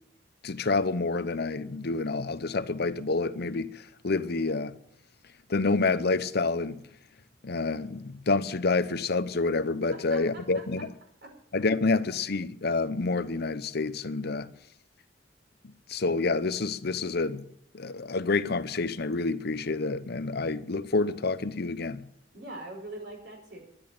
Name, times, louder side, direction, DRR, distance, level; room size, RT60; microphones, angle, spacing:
voice 1, 0.4-4.8 5.5-6.8 7.4-10.9 11.5-14.5 15.9-17.4 17.7-22.0, left 3 dB, 60° left, 0.8 m, -28 dB
voice 2, 9.9-10.8 11.2-11.3 22.3-23.6, right 2 dB, 65° right, 5.6 m, -43 dB
12.0 x 11.0 x 8.7 m
head